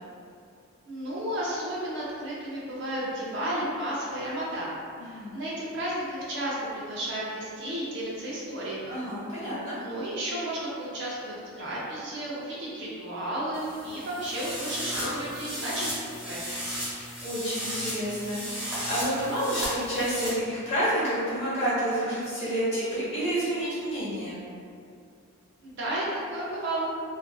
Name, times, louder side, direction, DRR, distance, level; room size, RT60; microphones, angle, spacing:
voice 1, 0.9-4.7 5.0-8.9 9.7-15.9 16.2-16.5 25.6-26.9, right 1 dB, 55° right, -6 dB, 0.5 m, -33 dB
voice 2, 5.0-5.4 8.8-9.8 16.9-24.4, equal, 30° left, -11 dB, 1.0 m, -29 dB
sound 1, 13.5-20.3, equal, 5° right, 0.8 m, -35 dB
2.5 x 2.4 x 2.2 m, 2.4 s
head